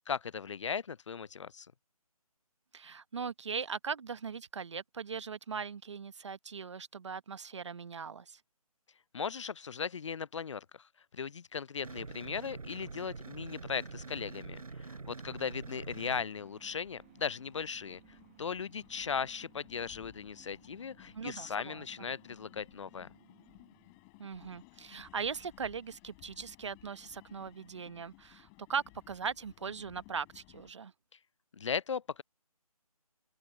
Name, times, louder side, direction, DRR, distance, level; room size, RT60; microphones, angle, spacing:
voice 1, 0.0-1.7 9.1-10.9 11.1-23.1 31.5-32.2, left 6 dB, 50° left, 0.5 m, -38 dB
voice 2, 2.7-8.4 21.1-21.8 24.2-30.9, right 6 dB, 50° right, 1.1 m, -39 dB
sound 1, 11.8-16.2, right 4 dB, 70° right, 4.4 m, -45 dB
sound 2, 15.9-24.2, right 15 dB, 20° right, 1.5 m, -63 dB
sound 3, 16.0-30.7, left 40 dB or more, 15° left, 5.1 m, -59 dB
open air
figure-of-eight pair, 160°, 19 cm